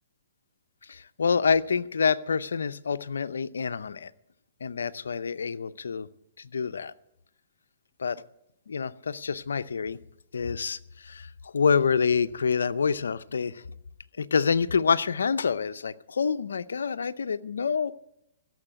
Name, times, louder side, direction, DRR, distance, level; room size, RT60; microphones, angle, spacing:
voice 1, 0.9-4.1 4.6-6.1 6.4-6.9 8.0-8.2 8.7-10.0 10.3-13.6 14.2-17.9, left 5 dB, 90° left, 13 dB, 0.6 m, -27 dB
15.5 x 7.1 x 9.1 m, 0.82 s
hypercardioid pair, 135°, 0 cm